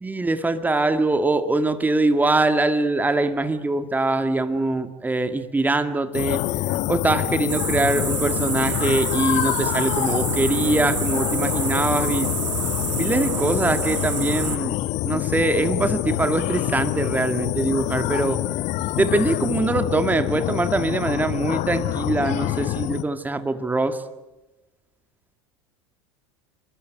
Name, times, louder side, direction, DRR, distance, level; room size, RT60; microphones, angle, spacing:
voice 1, 0.0-6.4 6.9-12.3 12.9-14.8 15.0-18.4 19.0-24.0, right 2 dB, 10° right, 9 dB, 2.1 m, -23 dB
sound 1, 6.1-23.0, left 15 dB, 50° left, 1.2 m, -26 dB
sound 2, 7.5-14.6, right 9 dB, 75° right, 1.6 m, -29 dB
28.0 x 23.0 x 9.1 m, 1.1 s
figure-of-eight pair, 75°, 15 cm